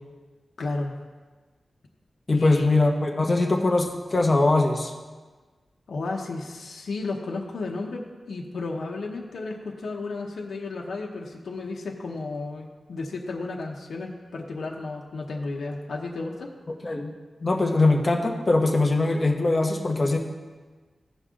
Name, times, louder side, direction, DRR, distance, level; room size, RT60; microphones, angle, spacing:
voice 1, 0.6-0.9 2.3-2.7 5.9-16.5, left 3 dB, 85° left, 0 dB, 1.0 m, -33 dB
voice 2, 2.3-4.9 16.8-17.1 17.4-20.2, left 2 dB, 30° left, 1 dB, 1.1 m, -22 dB
15.5 x 5.4 x 3.8 m, 1.4 s
wide cardioid pair, 140°, 0 cm